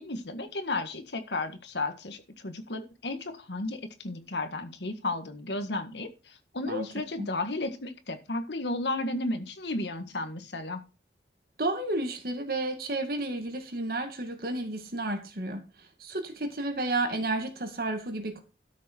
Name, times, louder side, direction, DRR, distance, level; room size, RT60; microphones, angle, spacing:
voice 1, 0.0-10.8, left 2 dB, 80° left, 8 dB, 1.7 m, -33 dB
voice 2, 11.6-15.6 16.0-18.4, right 2 dB, 55° right, 6 dB, 2.1 m, -31 dB
12.5 x 6.5 x 4.4 m, 0.31 s
head